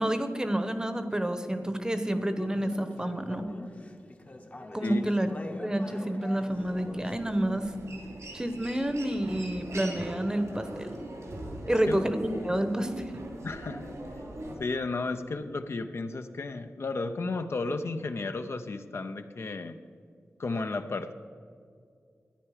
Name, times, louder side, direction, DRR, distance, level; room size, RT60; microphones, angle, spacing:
voice 1, 0.0-3.5 4.7-7.6 8.3-11.0 11.7-13.2, right 1 dB, 15° right, 9 dB, 0.9 m, -29 dB
Conversation / Chatter, 1.9-7.3, left 2 dB, 30° left, 0.9 m, -45 dB
Human voice, 6.5-14.5, right 1 dB, 85° right, 2.7 m, -41 dB
voice 2, 13.4-13.9 14.6-19.8 20.4-21.1, left 3 dB, 60° left, 8 dB, 0.6 m, -33 dB
13.0 x 9.8 x 4.9 m, 2.2 s
wide cardioid pair, 90°, 5 cm